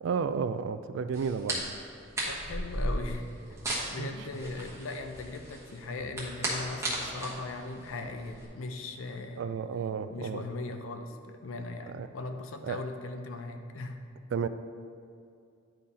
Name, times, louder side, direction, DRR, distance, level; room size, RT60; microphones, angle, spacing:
voice 1, 0.0-1.7 4.0-4.1 9.4-10.4 11.9-12.1 12.6-12.8 14.3-14.5, right 6 dB, 65° right, 12 dB, 0.3 m, -32 dB
sound 1, 1.1-8.4, right 1 dB, 15° right, 1.2 m, -36 dB
voice 2, 2.3-3.3 3.9-9.5 10.1-14.0, left 2 dB, 85° left, 6 dB, 0.6 m, -39 dB
10.0 x 3.8 x 4.2 m, 2.4 s
head